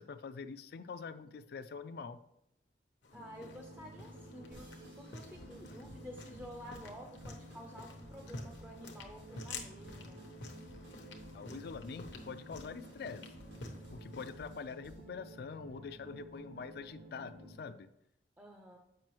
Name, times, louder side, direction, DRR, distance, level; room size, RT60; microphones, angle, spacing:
voice 1, 0.0-2.2 11.3-13.3 13.9-17.9, left 5 dB, 60° left, 11 dB, 0.4 m, -45 dB
sound 1, 3.0-14.5, left 3 dB, 85° left, 0.9 m, -50 dB
voice 2, 3.1-10.2 18.4-18.8, equal, 10° right, 2 dB, 0.5 m, -51 dB
sound 2, 3.1-17.5, right 1 dB, 50° right, 1.2 m, -53 dB
sound 3, 4.5-15.2, equal, 85° right, 1.9 m, -58 dB
7.6 x 5.3 x 3.0 m, 0.80 s
head